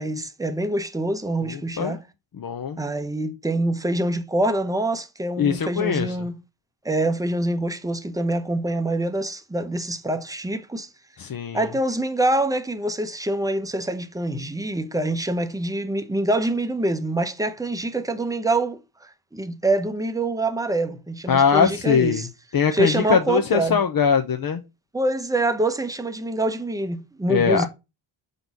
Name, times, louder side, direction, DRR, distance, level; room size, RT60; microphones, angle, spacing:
voice 1, 0.0-2.0 2.8-6.4 6.8-10.9 11.5-18.8 19.3-22.3 22.7-23.8 24.9-27.7, right 1 dB, 10° right, 0.7 m, -25 dB
voice 2, 1.4-2.0 2.4-2.8 5.4-6.3 11.2-11.7 21.3-22.3 22.5-24.6 27.3-27.7, left 6 dB, 50° left, 0.7 m, -21 dB
5.3 x 4.0 x 5.9 m
wide cardioid pair, 100°, 47 cm